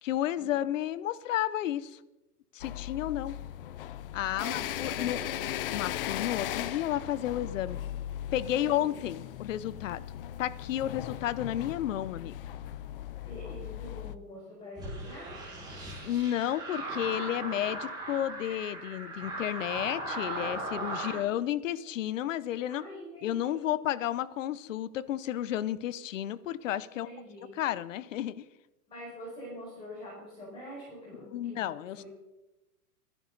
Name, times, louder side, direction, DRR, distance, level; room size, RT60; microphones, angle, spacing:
voice 1, 0.0-2.0 2.5-3.4 4.1-5.2 5.7-7.8 8.3-10.0 10.4-12.3 16.0-22.8 23.2-27.1 27.5-28.4 31.2-32.0, left 12 dB, 55° left, 17 dB, 0.9 m, -32 dB
sound 1, 2.6-14.1, left 12 dB, 40° left, 0.6 m, -38 dB
voice 2, 4.3-5.6 8.6-9.0 13.2-15.3 21.0-21.4 22.7-23.7 27.0-27.6 28.9-31.7 32.0-32.1, equal, 10° left, -7 dB, 5.6 m, -45 dB
sound 2, 14.8-21.2, right 2 dB, 10° right, 5.8 m, -38 dB
26.5 x 11.0 x 4.1 m, 0.98 s
hypercardioid pair, 160°, 46 cm